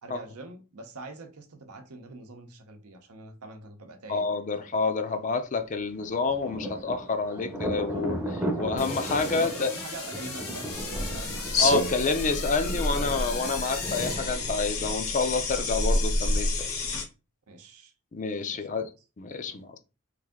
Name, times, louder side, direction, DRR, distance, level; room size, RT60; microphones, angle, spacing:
voice 1, 0.0-4.3 4.6-5.1 9.3-12.4 17.5-17.9 18.5-18.9 19.4-19.6, right 2 dB, 80° right, 0.8 m, -44 dB
voice 2, 4.1-9.7 11.6-16.7 18.1-18.9 19.2-19.8, left 4 dB, 35° left, 0.4 m, -28 dB
Thunder, 6.0-15.5, right 1 dB, 10° right, 0.6 m, -36 dB
sound 1, 8.8-15.0, left 4 dB, 85° left, 1.4 m, -38 dB
sound 2, 10.7-17.0, left 2 dB, 65° left, 0.9 m, -29 dB
3.2 x 2.5 x 3.6 m
head